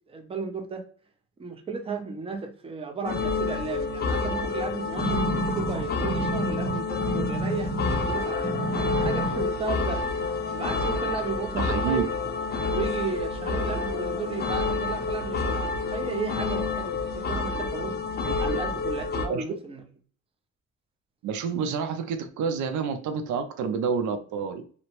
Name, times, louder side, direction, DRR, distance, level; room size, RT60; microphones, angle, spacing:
voice 1, 0.1-0.8 1.4-7.7 8.1-10.0 10.5-12.1 12.7-19.8, right 5 dB, 20° right, 0.5 m, -34 dB
sound 1, 3.0-19.3, left 4 dB, 35° left, 0.5 m, -29 dB
sound 2, 5.0-8.1 8.4-9.4 10.0-10.1, right 1 dB, ahead, 1.0 m, -30 dB
sound 3, 8.1-9.8 10.2-11.7 12.0-13.1 13.5-14.7 15.0-15.7, right 1 dB, 40° right, 1.4 m, -43 dB
voice 2, 11.5-12.1 19.3-19.4 21.2-24.6, right 6 dB, 75° right, 0.5 m, -28 dB
2.7 x 2.0 x 2.9 m
cardioid pair, 90°, 30 cm